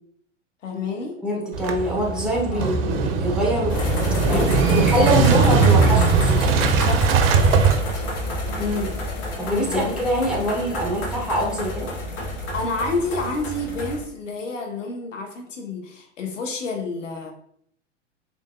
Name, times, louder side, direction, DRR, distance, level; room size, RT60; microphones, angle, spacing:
voice 1, 0.6-1.2 2.5-2.7 4.3-5.1 6.8-7.0 7.4-8.0 9.7-9.9 12.5-17.3, left 3 dB, 80° left, 3 dB, 0.8 m, -29 dB
voice 2, 1.2-3.7 4.3-6.5 8.6-8.9 9.4-11.9, equal, ahead, -3 dB, 0.9 m, -24 dB
Motorcycle / Engine starting, 1.5-8.8, right 5 dB, 55° right, 0.5 m, -20 dB
sound 1, 3.7-14.0, left 1 dB, 40° left, 0.9 m, -29 dB
3.7 x 2.7 x 2.2 m, 0.69 s
hypercardioid pair, 95°, 37 cm